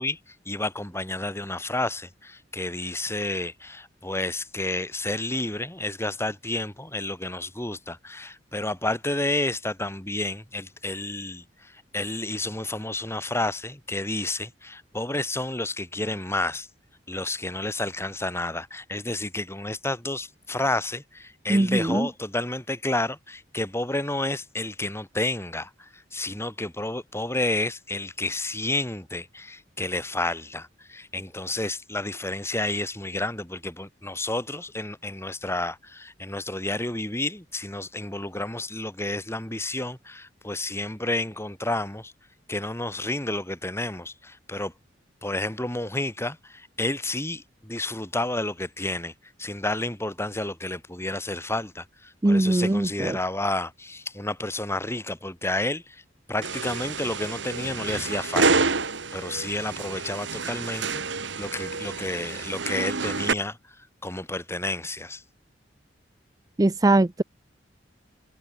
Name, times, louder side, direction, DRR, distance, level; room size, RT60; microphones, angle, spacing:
voice 1, 0.0-16.7 17.1-42.1 42.5-44.7 45.2-49.1 49.4-56.0 56.3-65.2, left 2 dB, 15° left, 7.9 m, -30 dB
voice 2, 21.5-22.1 52.2-53.2 66.6-67.2, right 2 dB, 20° right, 0.5 m, -21 dB
sound 1, 56.4-63.3, right 4 dB, 70° right, 2.0 m, -28 dB
head